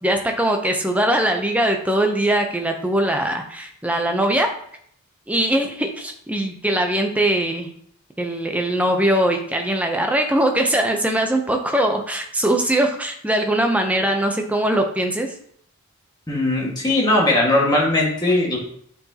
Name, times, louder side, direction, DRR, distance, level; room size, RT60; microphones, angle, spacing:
voice 1, 0.0-4.5 5.3-7.7 8.2-15.3, right 1 dB, 5° right, 4 dB, 0.6 m, -21 dB
voice 2, 16.3-18.6, left 1 dB, 20° left, -3 dB, 1.7 m, -19 dB
8.4 x 4.7 x 2.9 m, 0.66 s
head